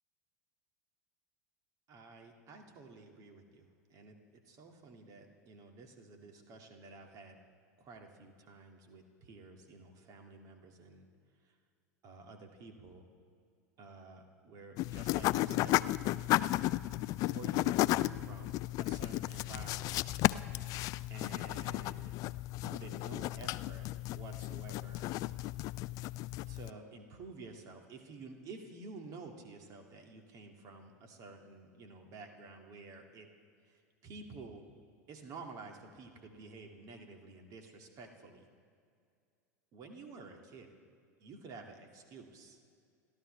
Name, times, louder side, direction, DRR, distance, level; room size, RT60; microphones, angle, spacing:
voice 1, 1.9-4.2 4.5-7.4 7.8-11.1 11.4-11.5 12.0-13.1 13.8-15.8 17.2-20.1 21.1-22.1 22.6-23.9 24.1-25.1 26.5-33.3 33.7-34.6 35.1-38.5 39.7-40.7 41.2-42.6, right 3 dB, 40° right, 3 dB, 2.1 m, -51 dB
sound 1, 14.8-26.7, left 16 dB, 40° left, 0.3 m, -34 dB
29.5 x 13.0 x 3.3 m, 2.3 s
figure-of-eight pair, 85°, 9 cm